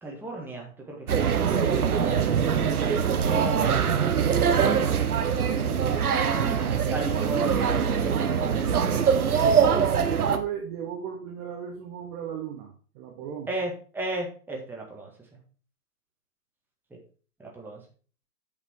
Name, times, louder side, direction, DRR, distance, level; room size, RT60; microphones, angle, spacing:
voice 1, 0.0-2.2 3.2-5.6 6.3-7.9 9.3-9.7 13.5-15.4 17.4-17.8, right 2 dB, 5° right, -2 dB, 1.7 m, -36 dB
sound 1, 1.1-10.4, right 7 dB, 70° right, 1.1 m, -23 dB
voice 2, 1.4-2.4 5.2-5.8 10.1-13.5, right 8 dB, 25° right, 1 dB, 1.0 m, -37 dB
8.1 x 5.3 x 4.5 m, 0.40 s
figure-of-eight pair, 125°, 46 cm